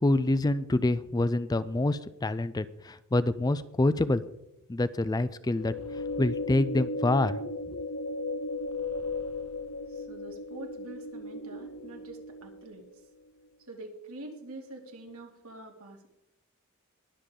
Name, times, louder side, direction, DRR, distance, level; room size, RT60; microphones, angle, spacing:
voice 1, 0.0-4.2 4.7-5.7 6.2-7.4 7.7-7.8, left 2 dB, 15° left, 15 dB, 0.4 m, -26 dB
sound 1, 5.5-12.9, left 2 dB, 80° left, 0.7 m, -36 dB
voice 2, 9.9-13.0 13.7-16.1, right 1 dB, 80° right, 2 dB, 2.6 m, -45 dB
20.5 x 7.1 x 3.8 m, 0.86 s
head